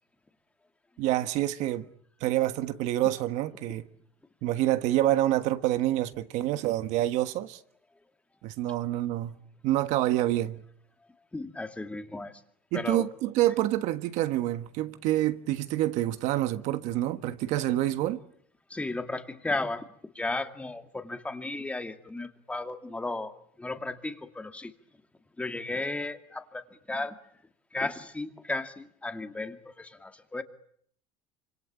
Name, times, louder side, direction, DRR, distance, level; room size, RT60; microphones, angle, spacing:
voice 1, 1.0-1.9 2.2-3.8 4.4-7.6 8.4-10.6 12.7-18.2, right 14 dB, 65° right, 1.5 m, -27 dB
voice 2, 11.3-12.4 12.7-13.1 18.7-19.9 20.1-24.7 25.4-27.2 27.7-30.4, left 2 dB, 10° left, 2.3 m, -34 dB
26.0 x 26.0 x 8.8 m
cardioid pair, 125°, 13 cm